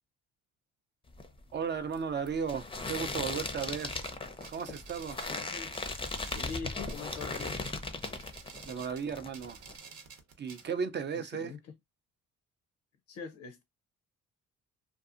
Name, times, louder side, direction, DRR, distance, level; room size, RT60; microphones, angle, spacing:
sound 1, 1.1-8.8 9.1-9.8, left 3 dB, 20° left, 0.5 m, -38 dB
voice 1, 1.5-4.0 4.5-5.2 8.7-9.6 10.4-11.5, right 6 dB, 35° right, 0.4 m, -35 dB
sound 2, 3.0-10.7, right 5 dB, 70° right, 0.8 m, -51 dB
voice 2, 5.3-5.7 6.3-7.6 11.1-11.7 13.1-13.6, left 5 dB, 65° left, 0.5 m, -43 dB
2.6 x 2.4 x 2.4 m
cardioid pair, 90°, 30 cm